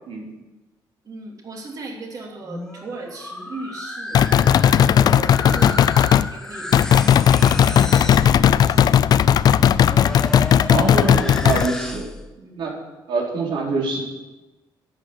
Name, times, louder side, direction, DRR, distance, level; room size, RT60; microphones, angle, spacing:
voice 1, 1.0-4.2 4.8-8.9 12.4-12.6, right 3 dB, 45° right, 0 dB, 3.1 m, -38 dB
sound 1, 2.3-12.3, left 1 dB, 5° left, 0.9 m, -34 dB
sound 2, 4.1-6.3 6.7-11.7, left 9 dB, 50° left, 0.4 m, -16 dB
voice 2, 10.7-12.1 12.6-12.7 13.1-14.0, right 3 dB, 70° right, -1 dB, 3.7 m, -24 dB
11.0 x 8.7 x 8.3 m, 1.1 s
cardioid pair, 140°, 9 cm